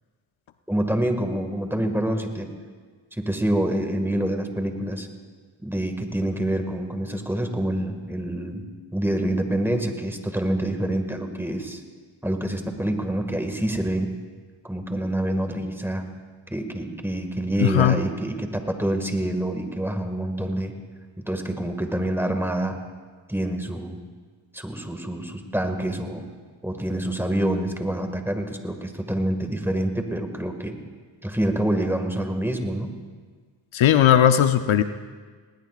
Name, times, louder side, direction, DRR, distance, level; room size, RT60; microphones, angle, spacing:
voice 1, 0.7-2.5 3.1-5.1 5.6-8.6 8.9-11.8 12.2-14.1 14.6-16.0 16.5-20.7 21.2-22.8 23.3-24.0 24.5-26.2 26.6-30.8 31.2-33.0, right 1 dB, 5° right, 5 dB, 1.9 m, -26 dB
voice 2, 17.6-18.0 33.7-34.8, left 10 dB, 70° left, 10 dB, 0.7 m, -17 dB
19.5 x 19.5 x 2.5 m, 1.5 s
cardioid pair, 65°, 49 cm